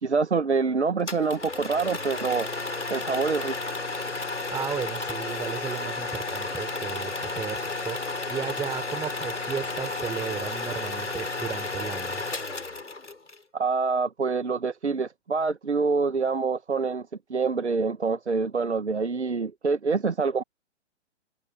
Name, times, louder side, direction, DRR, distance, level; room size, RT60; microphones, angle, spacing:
voice 1, 0.0-2.5 2.9-3.6 13.5-20.4, right 4 dB, 70° right, 1.9 m, -26 dB
sound 1, 1.1-13.4, left 3 dB, 75° left, 4.2 m, -32 dB
voice 2, 4.5-12.2, right 7 dB, 10° right, 4.5 m, -35 dB
figure-of-eight pair, 125°, 36 cm